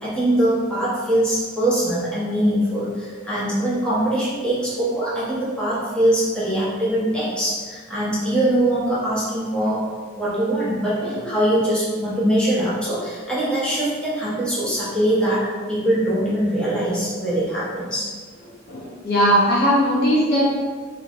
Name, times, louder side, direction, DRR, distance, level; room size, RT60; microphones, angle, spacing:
voice 1, 0.0-9.8 10.2-18.1, right 1 dB, 5° left, -9 dB, 0.9 m, -22 dB
voice 2, 18.7-20.6, equal, 55° left, -5 dB, 0.7 m, -19 dB
3.2 x 3.2 x 2.4 m, 1.5 s
head